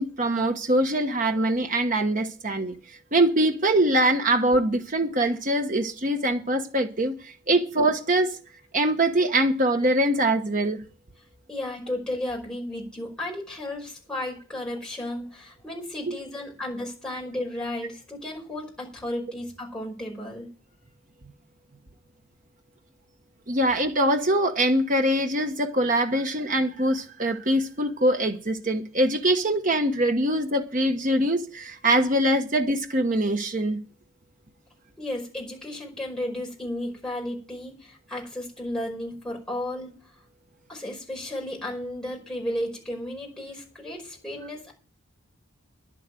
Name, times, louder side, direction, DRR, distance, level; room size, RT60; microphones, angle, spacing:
voice 1, 0.0-8.4 8.7-10.8 16.1-16.2 23.5-33.8, right 1 dB, 35° right, 1.2 m, -23 dB
voice 2, 11.5-20.5 35.0-39.9 40.7-44.7, left 1 dB, 5° left, 5.2 m, -33 dB
11.0 x 7.8 x 9.0 m
head